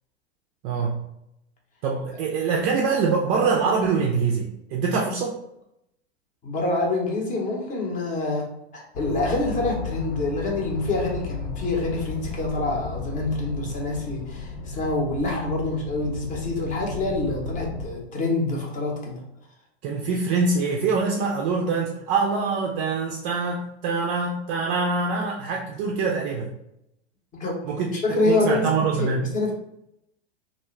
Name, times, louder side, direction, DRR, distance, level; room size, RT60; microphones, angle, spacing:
voice 1, 0.6-1.0 1.8-5.4 19.8-26.5 27.7-27.9 28.3-29.2, right 4 dB, 35° right, -1 dB, 0.4 m, -24 dB
voice 2, 6.4-19.2 27.3-28.7 29.0-29.5, left 2 dB, 25° left, -1 dB, 0.8 m, -26 dB
sound 1, 8.9-17.9, left 5 dB, 60° left, 0.5 m, -34 dB
2.5 x 2.2 x 3.1 m, 0.82 s
hypercardioid pair, 105°, 33 cm